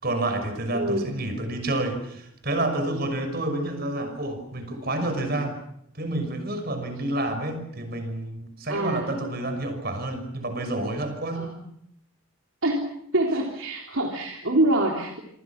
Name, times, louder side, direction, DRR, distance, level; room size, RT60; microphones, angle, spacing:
voice 1, 0.0-5.6 5.9-11.5, right 1 dB, 45° right, 7 dB, 6.0 m, -29 dB
voice 2, 0.7-1.1 8.7-9.2 11.3-11.6 12.6-12.9 13.1-15.2, right 1 dB, 65° right, 0 dB, 3.6 m, -25 dB
27.0 x 26.5 x 6.0 m, 0.73 s
head